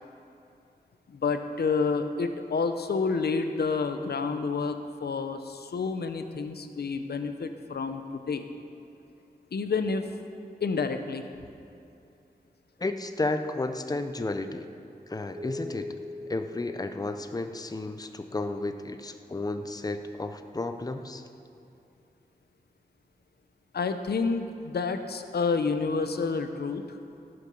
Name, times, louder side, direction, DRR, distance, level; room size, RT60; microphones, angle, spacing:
voice 1, 1.1-8.4 9.5-10.1 10.6-11.3 23.7-27.0, left 4 dB, 90° left, 8 dB, 0.7 m, -29 dB
voice 2, 12.8-14.7 15.1-15.9 16.3-21.3, left 2 dB, 25° left, 8 dB, 0.6 m, -32 dB
sound 1, 15.4-17.9, left 2 dB, 50° right, 1.4 m, -42 dB
17.5 x 7.9 x 5.4 m, 2.6 s
wide cardioid pair, 90°, 16 cm